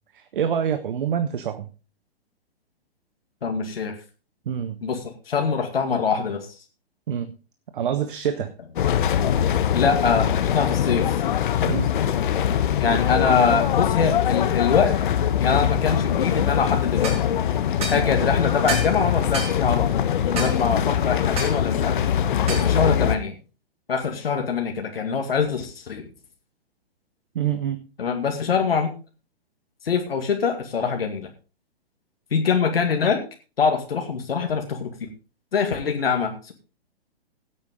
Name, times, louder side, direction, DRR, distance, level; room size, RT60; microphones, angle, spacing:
voice 1, 0.1-1.7 4.5-4.8 7.1-7.4 7.7-8.5 11.7-11.9 27.3-27.8, right 8 dB, 55° right, 10 dB, 1.2 m, -26 dB
voice 2, 3.4-3.9 4.8-5.0 5.3-6.5 9.7-11.1 12.8-14.9 15.4-17.2 17.9-22.1 22.5-23.4 23.9-26.0 28.0-28.9 29.8-31.3 32.3-33.2 33.6-34.9 35.5-36.5, left 5 dB, 65° left, 3 dB, 2.3 m, -23 dB
sound 1, 8.8-23.2, left 9 dB, 50° left, 1.3 m, -22 dB
sound 2, 17.0-17.2 17.8-18.0 18.7-18.9 19.3-19.6 20.4-20.6 21.4-21.6 22.5-22.7, right 3 dB, 20° right, 4.9 m, -29 dB
16.5 x 8.8 x 3.8 m, 0.34 s
figure-of-eight pair, 120°, 31 cm